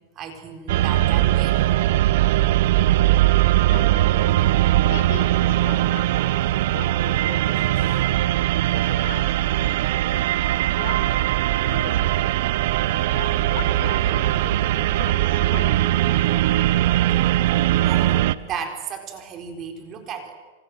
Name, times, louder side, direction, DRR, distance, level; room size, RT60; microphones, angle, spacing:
voice 1, 0.2-1.6 7.8-8.0 17.1-17.4 17.8-20.3, right 6 dB, 30° right, 5 dB, 4.2 m, -34 dB
sound 1, 0.7-18.4, right 14 dB, 60° right, 1.0 m, -20 dB
voice 2, 3.7-4.3 4.8-6.4 6.7-8.2 8.7-9.3 9.6-10.2 10.7-12.3 13.1-16.0, left 6 dB, 60° left, 5 dB, 7.2 m, -39 dB
28.0 x 27.0 x 7.8 m, 1.3 s
supercardioid pair, 150°, 0 cm